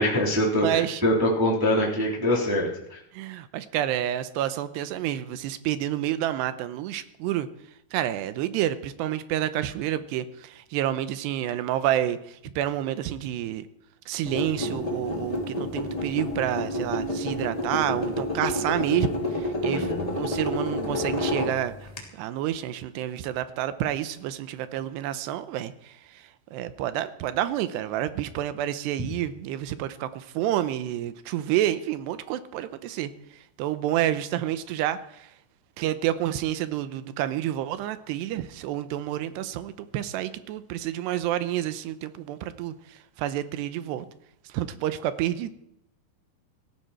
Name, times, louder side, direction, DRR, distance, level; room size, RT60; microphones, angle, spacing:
voice 1, 0.0-3.0 19.6-20.0, left 1 dB, 5° right, -4 dB, 2.8 m, -24 dB
voice 2, 0.6-1.0 3.1-7.5 7.9-13.7 14.1-21.7 22.1-33.1 33.6-35.3 35.8-44.1 44.5-45.5, right 12 dB, 90° right, 12 dB, 2.9 m, -29 dB
sound 1, 14.2-22.0, left 1 dB, 15° left, 1.7 m, -29 dB
17.5 x 15.0 x 4.4 m, 0.79 s
omnidirectional pair, 4.9 m